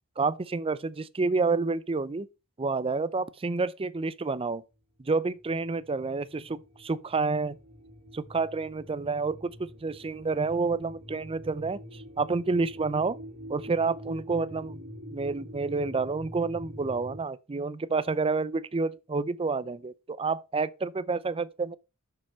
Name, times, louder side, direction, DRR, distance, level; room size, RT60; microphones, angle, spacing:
voice 1, 0.2-2.3 2.6-4.6 5.0-7.5 8.1-13.2 13.5-14.8 15.1-21.8, right 4 dB, 25° right, 0.5 m, -29 dB
sound 1, 5.4-17.2, equal, 70° right, 1.9 m, -45 dB
6.8 x 6.0 x 5.5 m
head